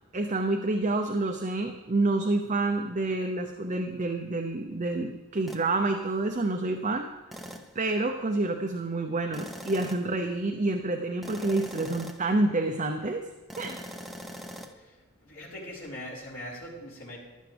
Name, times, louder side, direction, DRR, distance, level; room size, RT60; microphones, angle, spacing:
voice 1, 0.1-7.1 7.7-13.2 13.6-13.8, right 2 dB, 35° right, 5 dB, 0.7 m, -28 dB
sound 1, 5.5-5.7 7.3-7.8 9.3-10.2 11.2-12.3 13.5-14.7, equal, ahead, 0.7 m, -42 dB
voice 2, 15.2-17.2, left 1 dB, 70° left, -5 dB, 4.5 m, -41 dB
15.5 x 12.0 x 3.4 m, 1.3 s
head